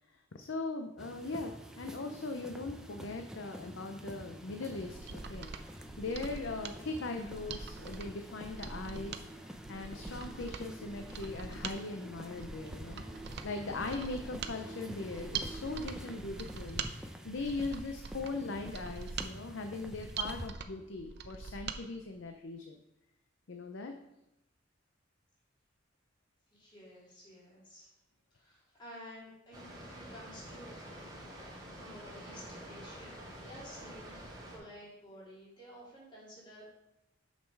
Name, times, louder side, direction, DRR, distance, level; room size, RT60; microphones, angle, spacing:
voice 1, 0.3-16.8 17.2-22.8 23.5-23.9, left 3 dB, 65° left, 5 dB, 0.6 m, -40 dB
sound 1, 1.0-20.5, equal, 5° right, 0.6 m, -47 dB
Mechanisms, 4.8-21.8 22.1-22.2, right 5 dB, 60° right, 0.6 m, -43 dB
voice 2, 26.5-27.9 28.3-30.7 31.8-34.2 34.5-36.7, equal, 25° left, -7 dB, 3.0 m, -52 dB
Water, 29.5-34.6, right 1 dB, 20° right, 2.1 m, -48 dB
6.6 x 6.3 x 4.7 m, 0.88 s
head